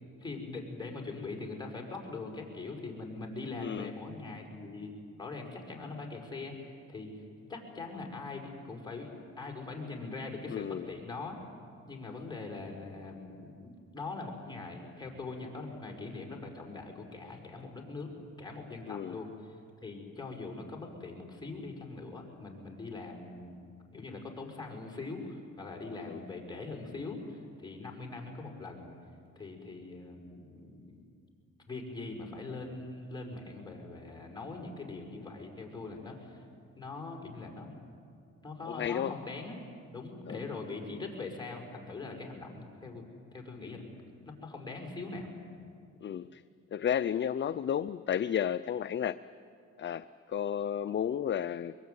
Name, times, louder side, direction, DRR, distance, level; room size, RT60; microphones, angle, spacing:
voice 1, 0.2-4.9 5.2-11.4 11.9-18.1 18.4-19.6 19.8-23.6 23.9-29.0 29.4-31.0 31.7-36.4 36.8-37.7 38.4-39.5 39.9-43.0 43.3-43.9 44.4-45.3, left 3 dB, 15° left, -1 dB, 5.8 m, -42 dB
voice 2, 3.6-3.9 10.5-10.9 18.9-19.2 26.0-26.2 38.7-39.2 40.3-40.5 46.0-46.4 46.7-49.2 49.8-51.7, left 9 dB, 40° left, 13 dB, 0.6 m, -32 dB
23.5 x 22.5 x 9.6 m, 2.4 s
cardioid pair, 90°, 30 cm